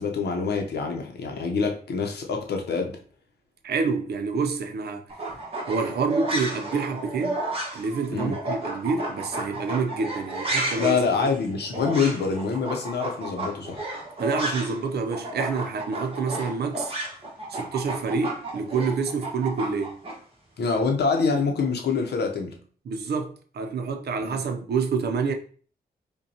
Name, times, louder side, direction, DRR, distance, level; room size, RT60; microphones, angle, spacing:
voice 1, 0.0-3.0 8.1-8.4 10.8-13.8 20.6-22.5 24.2-24.4, left 5 dB, 90° left, 0.7 m, -26 dB
voice 2, 3.6-5.1 5.7-7.4 7.7-11.3 14.2-16.9 17.5-20.0 22.9-25.3, right 4 dB, 80° right, 0.6 m, -28 dB
sound 1, 5.1-14.9 15.1-20.1, right 2 dB, 35° right, 1.2 m, -32 dB
5.2 x 2.2 x 2.7 m
cardioid pair, 80°, 17 cm